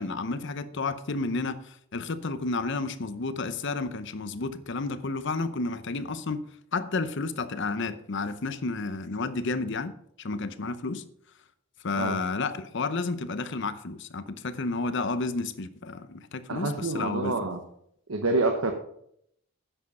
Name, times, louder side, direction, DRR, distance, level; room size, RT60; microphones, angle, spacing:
voice 1, 0.0-6.5 6.7-11.0 11.8-17.3, left 3 dB, 60° left, 13 dB, 0.8 m, -31 dB
voice 2, 16.5-17.6 18.1-18.7, right 3 dB, 85° right, 5 dB, 1.1 m, -27 dB
10.0 x 7.6 x 5.5 m, 0.71 s
head